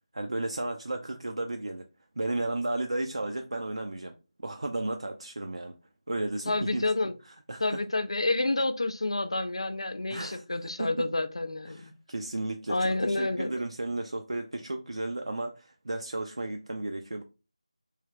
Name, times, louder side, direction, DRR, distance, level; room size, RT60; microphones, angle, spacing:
voice 1, 0.1-1.8 2.2-4.1 4.4-5.7 6.1-6.9 7.3-7.8 10.1-10.9 11.7-17.2, right 2 dB, 60° right, 0.4 m, -34 dB
voice 2, 6.5-7.1 7.6-11.9 12.7-13.5, left 2 dB, 55° left, 0.4 m, -29 dB
3.1 x 2.8 x 2.3 m
figure-of-eight pair, 165°, 3 cm